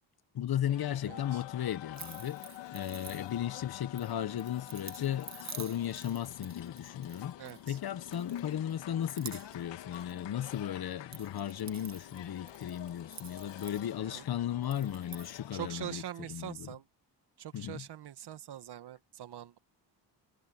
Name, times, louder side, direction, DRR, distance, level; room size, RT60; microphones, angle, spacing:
voice 1, 0.3-2.4 2.7-7.3 7.7-16.0 16.3-16.7 17.5-17.8, left 10 dB, 60° left, 1.4 m, -35 dB
sound 1, 0.7-16.1, left 13 dB, 80° left, 2.0 m, -47 dB
voice 2, 1.1-1.4 7.4-7.8 14.0-14.3 15.5-16.9 17.4-19.6, right 11 dB, 65° right, 1.9 m, -43 dB
sound 2, 1.9-3.6 4.0-7.8 8.1-8.7 9.0-9.7 9.9-10.6 10.9-14.2 14.6-15.4, right 6 dB, 40° right, 2.2 m, -49 dB
cardioid pair, 70°, 42 cm